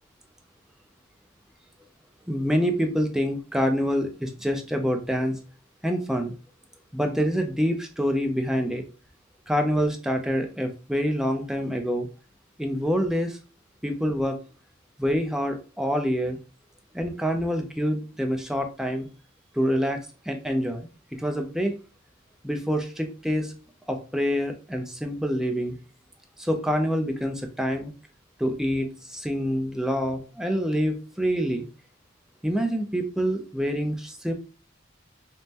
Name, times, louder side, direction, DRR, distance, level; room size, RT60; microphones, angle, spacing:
voice 1, 2.3-5.4 5.8-6.3 6.9-8.8 9.5-12.1 12.6-13.4 13.8-14.4 15.0-16.4 16.9-19.1 19.5-20.0 20.3-21.7 22.4-23.5 23.9-25.8 26.4-27.9 28.4-31.7 32.4-34.3, equal, 5° right, 4 dB, 0.5 m, -26 dB
5.2 x 2.1 x 2.8 m, 0.35 s
head